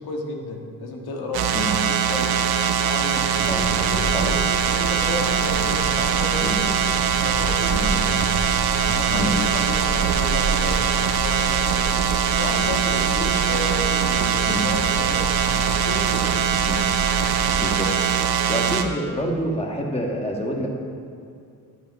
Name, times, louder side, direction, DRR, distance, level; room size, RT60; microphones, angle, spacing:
voice 1, 0.0-1.4 1.9-2.4 2.7-3.3 3.8-4.4 4.7-6.7 7.2-8.0 8.8-12.0 12.4-15.2 15.7-16.5, left 2 dB, 85° left, 1 dB, 1.8 m, -32 dB
sound 1, 1.3-18.8, right 8 dB, 85° right, 0.9 m, -22 dB
sound 2, 3.3-17.7, right 2 dB, 20° right, 1.5 m, -31 dB
voice 2, 17.6-17.9 18.5-20.7, equal, 15° left, 0 dB, 1.6 m, -27 dB
10.5 x 8.7 x 5.3 m, 2.3 s
cardioid pair, 130°, 37 cm